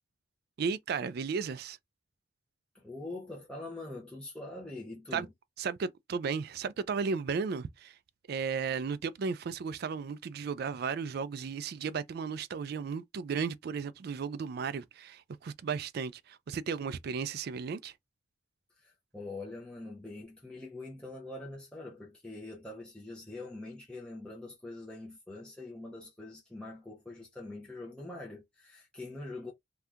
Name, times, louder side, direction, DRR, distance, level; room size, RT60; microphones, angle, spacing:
voice 1, 0.6-1.8 5.1-5.3 5.6-7.9 8.3-17.9, right 5 dB, 55° right, 0.3 m, -34 dB
voice 2, 2.7-5.3 18.8-29.5, left 2 dB, 5° left, 0.8 m, -44 dB
2.7 x 2.3 x 3.4 m
head